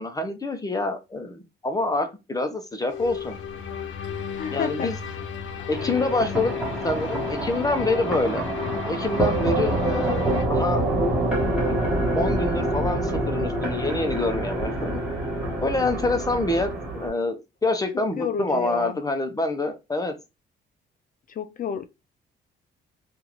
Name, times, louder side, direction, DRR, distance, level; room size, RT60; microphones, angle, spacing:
voice 1, 0.0-3.4 4.5-5.0 5.7-6.5 6.8-8.5 8.9-10.9 12.1-15.0 15.6-20.1, left 2 dB, 20° left, 0.7 m, -26 dB
sound 1, 2.9-10.4, left 7 dB, 70° left, 0.7 m, -34 dB
voice 2, 4.4-4.9 17.9-19.0 21.3-21.9, left 7 dB, 45° left, 0.4 m, -30 dB
sound 2, 5.7-17.1, right 1 dB, 5° right, 1.5 m, -26 dB
3.6 x 2.5 x 3.0 m
cardioid pair, 90°, 20 cm